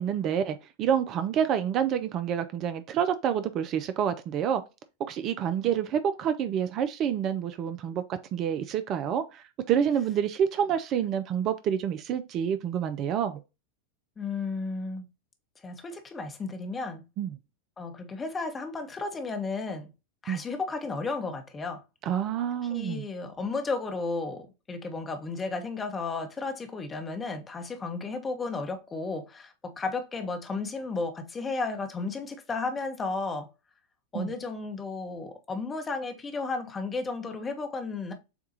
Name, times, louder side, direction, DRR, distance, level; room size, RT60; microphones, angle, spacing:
voice 1, 0.0-4.6 5.1-13.4 17.2-17.3 20.3-20.4 22.1-23.0 34.1-34.3, right 8 dB, 35° right, 0.4 m, -28 dB
voice 2, 14.2-15.1 15.6-17.0 17.8-19.9 20.2-21.8 22.7-33.5 34.1-38.1, left 3 dB, 15° left, 0.9 m, -33 dB
7.0 x 2.3 x 2.8 m
figure-of-eight pair, 90°, 0 cm